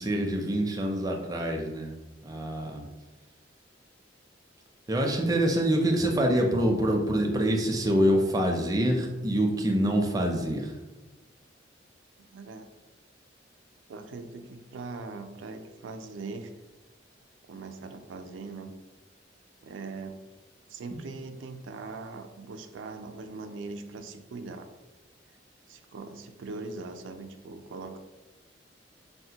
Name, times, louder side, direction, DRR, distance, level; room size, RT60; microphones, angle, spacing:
voice 1, 0.0-1.9 2.2-2.9 4.9-10.7 20.9-21.0, right 1 dB, 20° right, 1 dB, 0.4 m, -26 dB
voice 2, 12.3-12.7 13.9-16.5 17.5-18.7 19.6-20.2 20.7-24.7 25.7-28.0, right 3 dB, 90° right, 7 dB, 0.3 m, -41 dB
4.1 x 2.1 x 2.8 m, 1.1 s
head